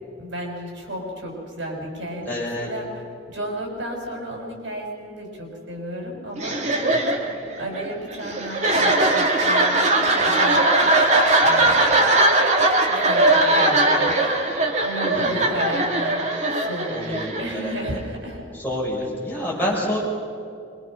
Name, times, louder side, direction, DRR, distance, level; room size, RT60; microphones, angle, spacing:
voice 1, 0.2-6.6 7.6-11.1 11.4-12.0 12.8-16.2 16.5-18.5 19.4-19.9, right 1 dB, 85° right, 0 dB, 6.0 m, -33 dB
voice 2, 2.3-2.7 6.7-7.0 15.1-15.5 16.9-17.7 18.6-20.0, left 1 dB, 10° left, -5 dB, 6.6 m, -28 dB
sound 1, 6.4-18.1, right 2 dB, 40° right, 2.2 m, -20 dB
25.5 x 23.5 x 6.3 m, 2.6 s
head